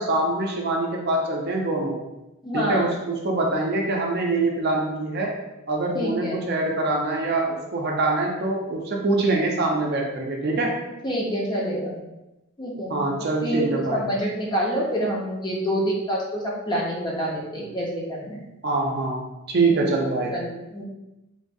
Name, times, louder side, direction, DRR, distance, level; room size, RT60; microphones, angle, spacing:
voice 1, 0.0-2.0 2.5-5.3 5.7-10.8 12.9-14.0 18.6-20.3, right 2 dB, 50° right, 0 dB, 0.5 m, -24 dB
voice 2, 2.4-2.9 5.9-6.4 11.0-12.0 12.6-12.9 13.4-18.4 19.7-19.8 20.3-20.8, equal, 20° left, -3 dB, 0.5 m, -27 dB
3.1 x 2.3 x 2.6 m, 0.97 s
head